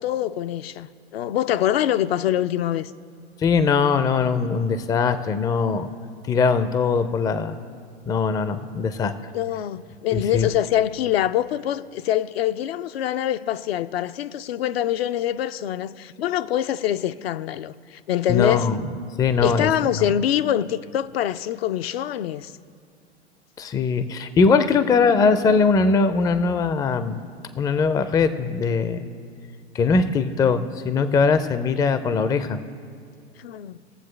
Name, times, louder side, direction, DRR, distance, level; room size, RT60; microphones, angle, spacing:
voice 1, 0.0-2.9 9.3-18.7 19.4-22.5 33.4-33.8, left 11 dB, 70° left, 0.5 m, -24 dB
voice 2, 3.4-5.9 6.3-7.6 8.0-9.1 10.1-10.5 18.3-18.8 19.2-19.7 20.0-20.1 23.6-27.2 27.6-29.1 29.7-32.6, left 5 dB, 10° left, 0.4 m, -21 dB
20.5 x 7.3 x 3.2 m
hypercardioid pair, 95°, 33 cm